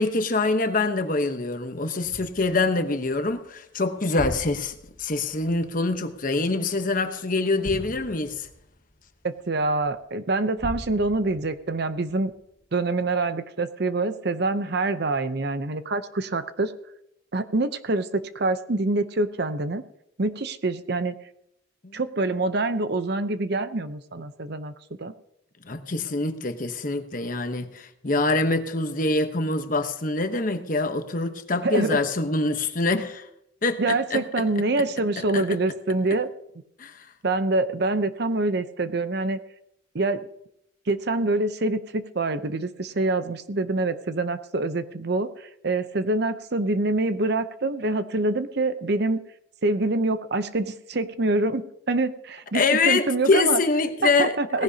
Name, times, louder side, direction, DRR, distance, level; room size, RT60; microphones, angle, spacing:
voice 1, 0.0-4.7 5.0-8.5 21.8-21.9 25.6-33.2 33.6-34.5 35.2-35.4 36.8-36.9 52.5-54.6, left 3 dB, 45° left, 8 dB, 1.0 m, -25 dB
sound 1, 2.0-7.0 7.6-10.0 10.6-12.6 13.1-13.2, equal, 65° left, 1.8 m, -41 dB
voice 2, 9.2-12.3 12.7-16.7 17.3-19.8 20.2-21.1 21.9-25.1 31.6-32.0 33.8-36.3 37.2-39.4 39.9-40.2 40.9-49.2 49.6-53.6 54.0-54.6, right 2 dB, 60° right, 11 dB, 0.7 m, -25 dB
18.0 x 15.5 x 2.8 m, 0.77 s
head